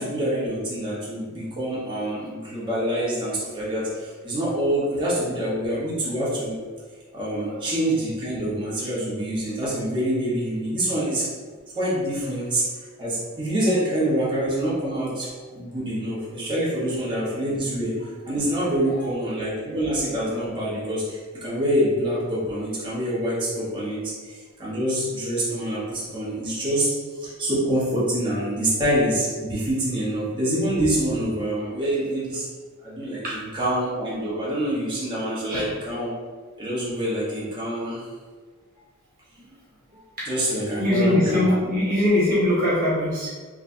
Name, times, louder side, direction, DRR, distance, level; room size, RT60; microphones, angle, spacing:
voice 1, 0.0-6.5 7.1-11.2 11.7-12.6 13.0-17.9 18.2-26.9 27.2-32.5 32.8-36.1 36.6-38.1 39.9-41.5, right 1 dB, 25° right, -8 dB, 1.2 m, -26 dB
voice 2, 40.8-43.4, left 1 dB, 45° right, -8 dB, 1.2 m, -22 dB
4.8 x 3.1 x 2.8 m, 1.5 s
head